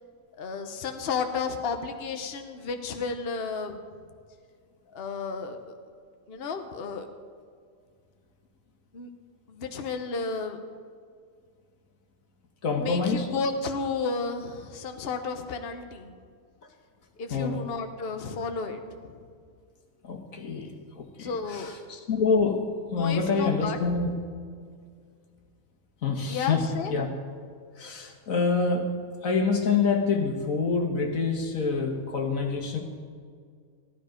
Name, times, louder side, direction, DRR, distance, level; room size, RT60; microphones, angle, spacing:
voice 1, 0.4-3.9 4.9-5.6 6.3-7.1 8.9-9.1 9.5-10.6 12.7-16.2 17.2-19.2 21.2-21.7 23.0-23.8 26.3-26.9, left 4 dB, 50° left, 6 dB, 1.1 m, -32 dB
voice 2, 12.6-13.3 17.3-17.6 20.0-22.6 22.9-24.1 26.0-27.1 27.8-29.0 29.2-32.8, left 4 dB, 90° left, 3 dB, 1.9 m, -26 dB
15.5 x 12.5 x 5.1 m, 2.1 s
omnidirectional pair, 1.4 m